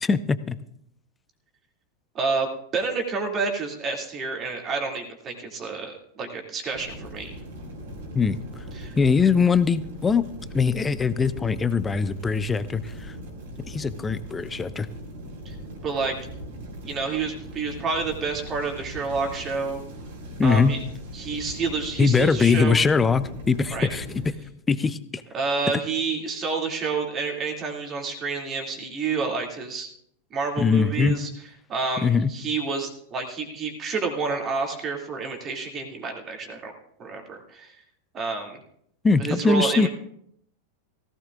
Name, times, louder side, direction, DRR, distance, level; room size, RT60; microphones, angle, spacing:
voice 1, 0.0-0.6 8.1-8.4 9.0-10.3 10.5-13.1 13.7-14.9 20.4-20.8 22.0-24.3 24.7-25.2 30.6-31.2 32.0-32.3 39.0-39.9, left 5 dB, 15° left, 15 dB, 0.6 m, -22 dB
voice 2, 2.1-7.4 8.7-9.0 15.4-15.5 15.8-16.1 16.8-19.8 20.4-20.8 21.1-22.8 23.7-23.9 25.3-29.9 30.3-31.3 31.7-36.7 37.0-37.8 38.1-38.6 39.2-39.9, right 4 dB, 25° right, 2 dB, 2.6 m, -29 dB
sound 1, 6.7-24.3, right 1 dB, 55° right, 3.3 m, -40 dB
17.5 x 16.5 x 2.5 m, 0.70 s
figure-of-eight pair, 90°, 0 cm